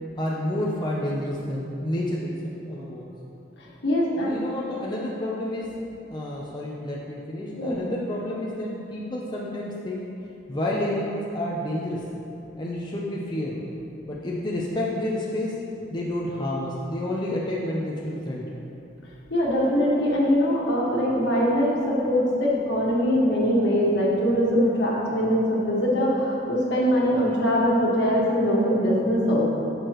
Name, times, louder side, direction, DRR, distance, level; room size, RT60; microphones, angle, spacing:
voice 1, 0.2-3.1 4.2-5.7 6.1-10.0 10.5-12.0 12.6-13.6 14.1-15.6 15.9-18.5, left 1 dB, 25° left, -4 dB, 0.7 m, -29 dB
voice 2, 3.8-4.3 7.6-7.8 19.3-29.4, equal, 65° left, -5 dB, 1.7 m, -22 dB
11.0 x 6.7 x 3.1 m, 2.8 s
head